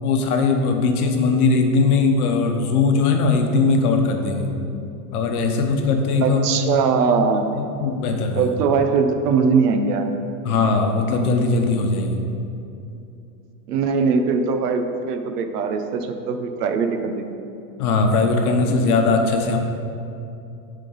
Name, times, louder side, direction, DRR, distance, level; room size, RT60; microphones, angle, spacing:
voice 1, 0.0-4.5 5.1-6.4 7.5-8.5 10.4-12.2 17.8-19.6, left 3 dB, 65° left, 4 dB, 1.0 m, -19 dB
voice 2, 6.2-7.4 8.3-10.1 13.7-17.3, right 5 dB, 75° right, 7 dB, 0.8 m, -21 dB
7.2 x 3.7 x 5.4 m, 2.7 s
supercardioid pair, 180°, 48 cm